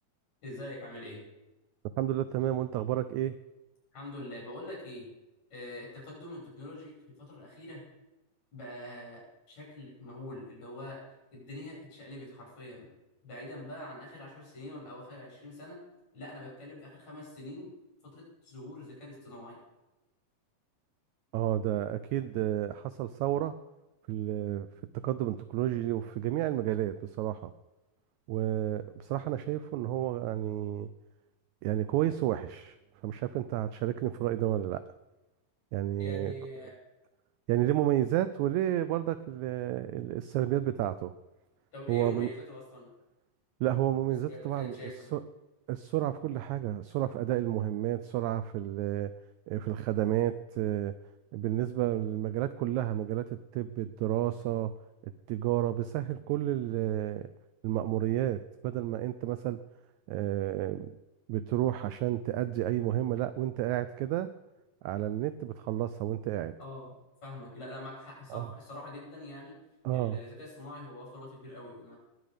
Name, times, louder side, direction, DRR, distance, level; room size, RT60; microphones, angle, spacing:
voice 1, 0.4-1.2 3.9-5.1 5.5-7.8 8.5-9.2 9.5-11.0 11.3-12.9 13.2-15.8 16.1-17.7 18.0-19.6 36.0-36.7 41.7-42.9 44.1-45.1 66.6-66.9 67.2-69.6 69.9-72.0, left 1 dB, 55° left, -2 dB, 7.3 m, -44 dB
voice 2, 2.0-3.4 21.3-23.5 24.1-24.7 25.0-27.5 28.3-30.9 31.6-32.7 33.0-34.8 35.7-36.3 37.5-41.1 41.9-42.3 43.6-45.2 45.7-49.1 49.5-50.9 51.3-53.3 53.5-54.7 55.3-57.3 57.6-59.6 60.1-60.9 61.3-64.3 64.8-66.5 68.3-68.5 69.8-70.2, right 13 dB, 85° right, 13 dB, 1.6 m, -31 dB
20.5 x 7.8 x 5.1 m, 1.0 s
omnidirectional pair, 3.9 m